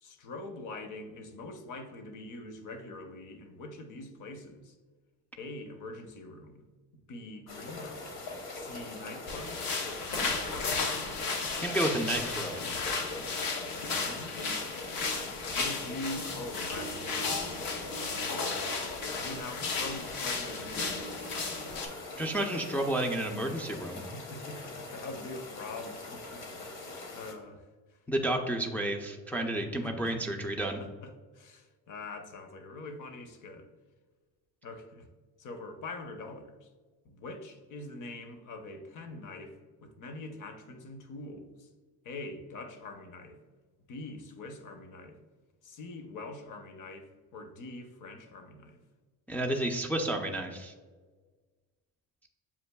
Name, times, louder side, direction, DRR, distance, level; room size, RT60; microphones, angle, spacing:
voice 1, 0.0-4.7 5.4-6.6 7.1-8.3 8.5-11.1 13.8-14.6 15.5-18.5 19.1-22.2 24.1-26.8 27.1-28.0 29.6-30.2 30.8-33.7 34.6-35.1 35.4-36.7 37.0-41.7 42.0-43.4 43.9-45.2 45.6-48.8, left 2 dB, 50° left, 6 dB, 0.7 m, -44 dB
sound 1, 7.5-27.3, left 2 dB, 70° left, 1.1 m, -43 dB
sound 2, 9.3-21.9, left 4 dB, 90° left, 0.8 m, -34 dB
voice 2, 11.6-12.6 22.2-24.0 28.1-30.8 49.3-50.7, right 1 dB, 5° left, 1 dB, 0.3 m, -31 dB
7.1 x 2.5 x 2.2 m, 1.4 s
cardioid pair, 90°, 39 cm